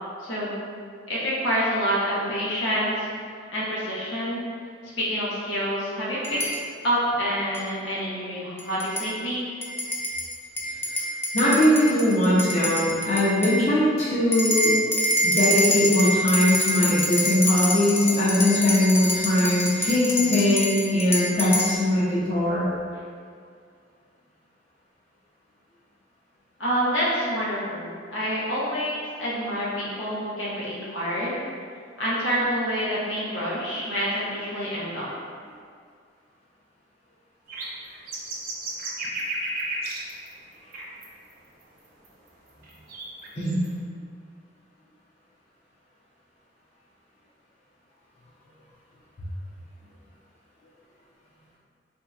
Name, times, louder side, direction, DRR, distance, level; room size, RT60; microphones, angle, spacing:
voice 1, 0.2-0.6 1.1-3.1 3.5-4.5 5.0-6.4 6.8-9.5 26.6-31.3 32.0-35.1, equal, 85° left, -7 dB, 0.9 m, -27 dB
sound 1, 6.2-6.6 7.5-7.6 8.6-9.1 9.6-13.6 14.3-21.7, equal, 15° left, 0.3 m, -26 dB
voice 2, 11.3-14.7 15.2-22.7 43.4-43.6, left 1 dB, 40° left, -8 dB, 0.7 m, -21 dB
sound 2, 37.5-40.3 40.7-41.1 41.3-41.4 42.0-42.1 42.6-43.7, right 1 dB, 50° right, 0.6 m, -32 dB
4.2 x 2.7 x 2.4 m, 2.2 s
head